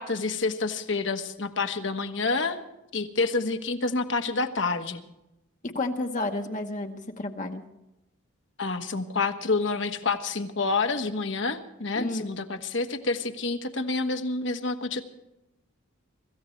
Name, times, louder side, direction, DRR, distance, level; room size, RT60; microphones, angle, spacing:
voice 1, 0.0-2.6 2.9-5.0 8.6-15.0, left 3 dB, 65° left, 7 dB, 1.3 m, -28 dB
voice 2, 5.7-7.6 12.0-12.3, left 2 dB, 40° left, 3 dB, 1.1 m, -31 dB
25.0 x 14.5 x 3.2 m, 0.92 s
head